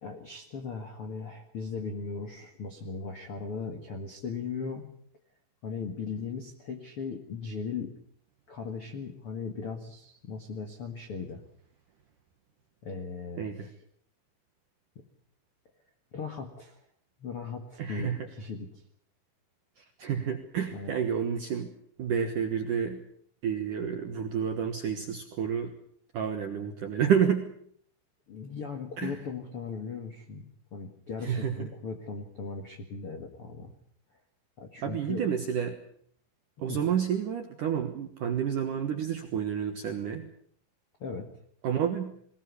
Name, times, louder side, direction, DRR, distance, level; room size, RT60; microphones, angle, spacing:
voice 1, 0.0-4.9 5.6-7.9 8.5-11.4 12.8-13.8 16.1-16.8 17.2-18.8 20.7-20.9 28.3-33.7 34.6-35.3 36.7-36.8 41.0-41.3, left 5 dB, 80° left, 6 dB, 1.2 m, -38 dB
voice 2, 13.4-13.7 17.8-18.3 20.0-21.7 22.0-23.0 23.4-25.7 26.1-27.5 29.0-29.1 31.2-31.7 34.8-35.8 36.6-40.3 41.6-42.1, right 8 dB, 70° right, 6 dB, 2.0 m, -29 dB
22.0 x 18.5 x 8.3 m, 0.64 s
omnidirectional pair, 5.7 m